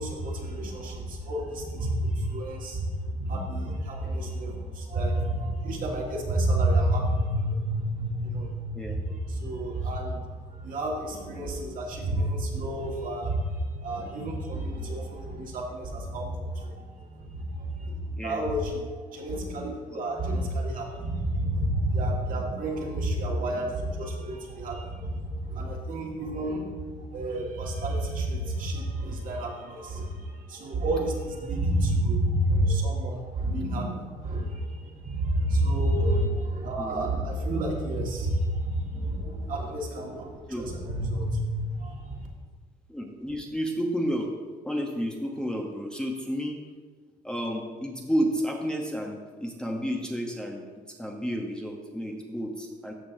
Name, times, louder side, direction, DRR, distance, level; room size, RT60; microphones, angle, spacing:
voice 1, 0.0-42.3, right 1 dB, 55° right, -1 dB, 1.8 m, -29 dB
voice 2, 42.9-44.3 44.6-46.6 47.2-50.7 51.0-52.9, equal, 5° left, 1 dB, 0.8 m, -31 dB
13.5 x 5.3 x 2.7 m, 1.5 s
cardioid pair, 110°, 17 cm